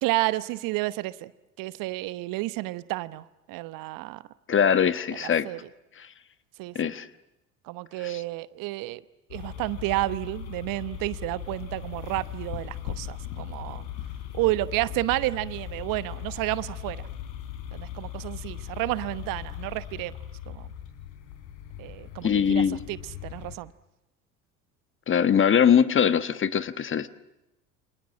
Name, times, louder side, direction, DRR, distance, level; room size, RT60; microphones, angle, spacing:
voice 1, 0.0-1.3 1.6-4.2 5.2-5.6 6.6-6.9 7.7-9.0 9.3-13.8 14.3-17.0 17.7-20.1 20.5-20.7 21.8-23.0 23.2-23.7, right 19 dB, 55° right, 16 dB, 1.0 m, -31 dB
voice 2, 4.5-5.5 6.0-6.1 6.7-7.1 8.0-8.2 22.2-22.8 25.1-27.1, left 8 dB, 30° left, 13 dB, 1.2 m, -22 dB
sound 1, 9.3-23.6, left 10 dB, 65° left, 3.9 m, -39 dB
29.0 x 26.5 x 7.4 m, 0.95 s
figure-of-eight pair, 65°, 41 cm